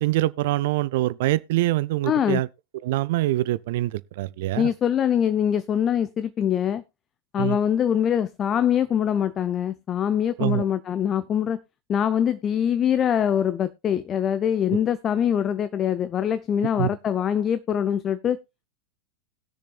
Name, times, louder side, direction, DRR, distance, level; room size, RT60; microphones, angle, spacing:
voice 1, 0.0-2.5 2.8-4.7 7.4-7.6 10.4-10.6 16.8-16.9, right 16 dB, 50° right, 0.4 m, -24 dB
voice 2, 2.1-2.4 4.6-6.8 7.3-11.6 11.9-18.4, left 9 dB, 25° left, 0.5 m, -23 dB
20.0 x 6.7 x 2.3 m
figure-of-eight pair, 90°, 0 cm